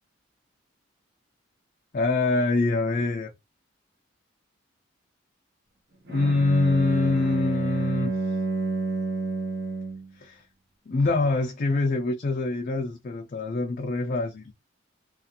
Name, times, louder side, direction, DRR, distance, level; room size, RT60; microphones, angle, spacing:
voice 1, 1.9-3.3 6.1-8.1 10.2-10.4 10.9-14.5, left 3 dB, 45° left, 0.4 m, -24 dB
Bowed string instrument, 6.1-10.1, right 3 dB, 55° right, 0.9 m, -29 dB
2.4 x 2.4 x 2.8 m
head